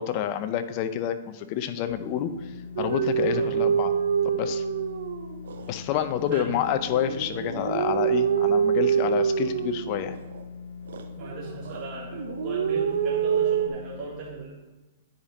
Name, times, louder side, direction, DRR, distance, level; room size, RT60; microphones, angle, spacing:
voice 1, 0.0-3.9 4.2-4.6 5.7-10.2, left 10 dB, 45° left, 10 dB, 0.7 m, -28 dB
sound 1, 1.9-14.0, left 5 dB, 90° left, 1.6 m, -41 dB
sound 2, 2.8-5.7 6.2-10.4 10.9-11.8 12.1-13.7, right 8 dB, 80° right, 0.8 m, -26 dB
voice 2, 11.2-14.5, right 4 dB, 35° right, -5 dB, 1.8 m, -38 dB
10.0 x 5.2 x 4.1 m, 1.2 s
hypercardioid pair, 135°, 0 cm